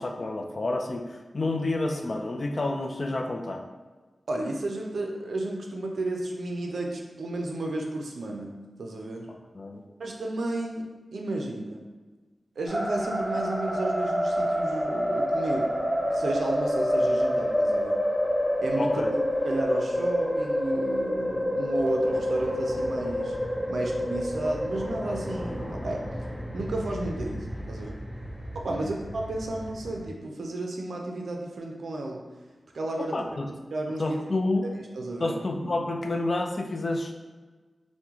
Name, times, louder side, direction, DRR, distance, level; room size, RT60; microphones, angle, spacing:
voice 1, 0.0-3.6 9.5-9.8 18.8-19.1 28.7-28.9 33.0-33.5 34.0-34.7 35.2-37.1, left 2 dB, 50° left, 4 dB, 0.3 m, -29 dB
voice 2, 4.3-9.3 10.0-11.8 12.6-18.0 18.6-23.4 23.7-26.0 26.5-27.9 28.6-32.2 32.7-33.4 33.7-34.2 34.7-35.4, right 2 dB, 90° right, 1 dB, 0.4 m, -32 dB
sound 1, 12.7-30.1, equal, 20° left, 0.9 m, -28 dB
3.5 x 2.1 x 3.0 m, 1.3 s
wide cardioid pair, 75°, 0 cm